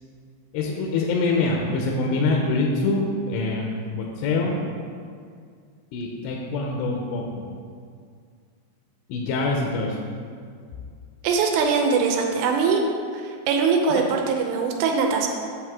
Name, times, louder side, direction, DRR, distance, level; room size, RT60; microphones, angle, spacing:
voice 1, 0.5-4.7 5.9-7.5 9.1-10.0, left 3 dB, 85° left, 0 dB, 2.8 m, -25 dB
voice 2, 11.2-12.8 13.1-15.3, right 5 dB, 85° right, 2 dB, 2.8 m, -22 dB
8.7 x 6.5 x 3.6 m, 2.1 s
omnidirectional pair, 5.2 m